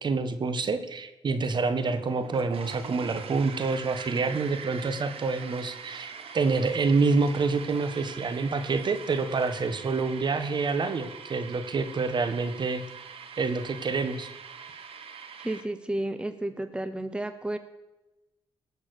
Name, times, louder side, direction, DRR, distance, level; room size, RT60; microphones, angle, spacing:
voice 1, 0.0-12.8 13.4-14.3, right 4 dB, 50° right, 10 dB, 1.6 m, -27 dB
sound 1, 1.8-15.6, right 6 dB, 70° right, 1.6 m, -43 dB
voice 2, 15.4-17.6, right 1 dB, 10° right, 10 dB, 1.0 m, -32 dB
19.0 x 7.1 x 6.7 m, 1.0 s
cardioid pair, 80°, 10 cm